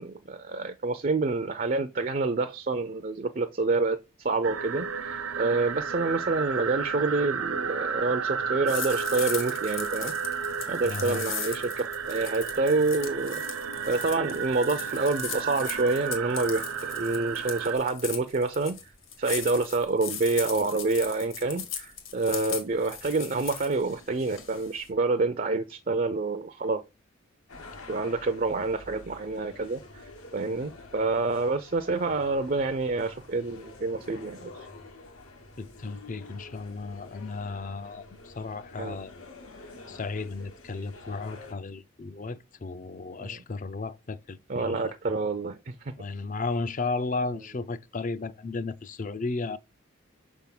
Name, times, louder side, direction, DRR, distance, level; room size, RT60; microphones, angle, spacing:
voice 1, 0.0-10.1 10.7-18.8 19.2-26.8 27.9-30.0 30.3-34.5 38.8-39.0 43.2-43.4 44.5-45.9, right 3 dB, 40° right, 0.5 m, -28 dB
sound 1, 4.4-17.7, right 6 dB, 75° right, 0.8 m, -33 dB
sound 2, 8.7-24.9, left 8 dB, 65° left, 1.6 m, -39 dB
voice 2, 10.8-11.2 35.6-39.1 39.9-44.9 46.0-49.6, left 3 dB, 35° left, 0.5 m, -34 dB
sound 3, 27.5-41.5, left 2 dB, 85° left, 1.7 m, -48 dB
6.3 x 3.5 x 5.9 m
head